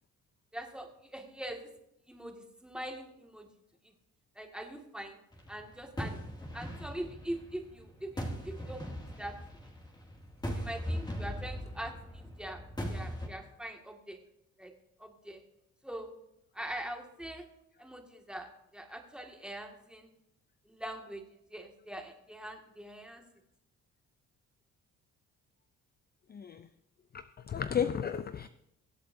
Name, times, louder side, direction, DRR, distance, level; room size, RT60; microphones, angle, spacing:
voice 1, 0.5-1.6 2.1-2.4 2.6-3.5 4.4-5.2 5.5-6.2 6.5-8.8 9.2-9.4 10.5-12.6 12.9-14.2 14.6-14.7 15.0-15.4 15.8-16.1 16.6-17.4 17.8-18.5 18.7-20.1 20.7-21.2 21.5-23.2, right 1 dB, 5° right, 1.9 m, -42 dB
sound 1, 5.3-13.3, equal, 15° left, 2.2 m, -39 dB
voice 2, 26.3-26.7 27.1-28.5, left 8 dB, 35° left, 0.4 m, -33 dB
23.0 x 8.3 x 2.6 m
cardioid pair, 90°, 30 cm